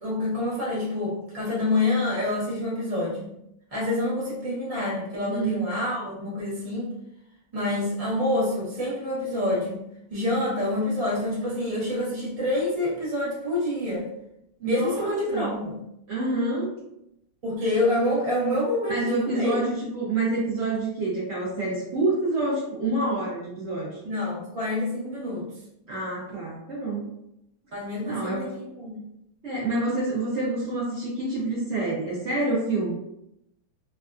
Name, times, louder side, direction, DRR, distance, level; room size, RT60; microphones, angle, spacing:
voice 1, 0.0-3.3 3.7-6.9 7.5-9.8 10.1-14.1 14.6-15.8 17.4-19.6 24.0-25.5 27.7-29.0, left 1 dB, 35° right, -7 dB, 0.6 m, -27 dB
voice 2, 5.3-5.7 14.6-15.6 16.1-16.7 18.9-24.0 25.9-27.1 28.1-28.5 29.4-32.9, right 2 dB, 80° right, -8 dB, 0.6 m, -27 dB
3.3 x 2.3 x 2.4 m, 0.80 s
omnidirectional pair, 2.2 m